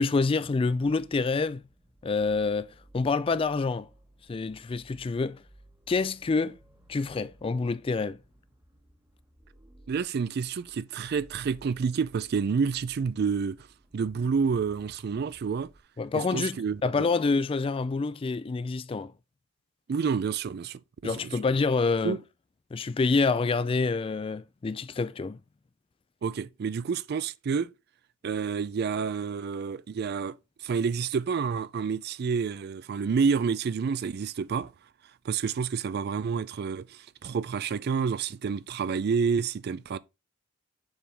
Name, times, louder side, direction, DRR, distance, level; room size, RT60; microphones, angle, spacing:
voice 1, 0.0-1.6 2.0-3.9 4.3-5.4 5.9-6.6 6.9-8.2 16.0-19.1 21.0-22.2 22.7-25.4, left 4 dB, 25° left, 0.3 m, -27 dB
sound 1, 0.8-15.8, right 1 dB, 15° right, 1.1 m, -58 dB
voice 2, 9.9-13.6 13.9-15.7 16.1-17.0 19.9-21.3 22.0-22.2 26.2-27.7 28.2-30.4 30.6-34.7 35.2-40.0, right 5 dB, 55° right, 0.4 m, -29 dB
7.1 x 3.9 x 3.4 m
head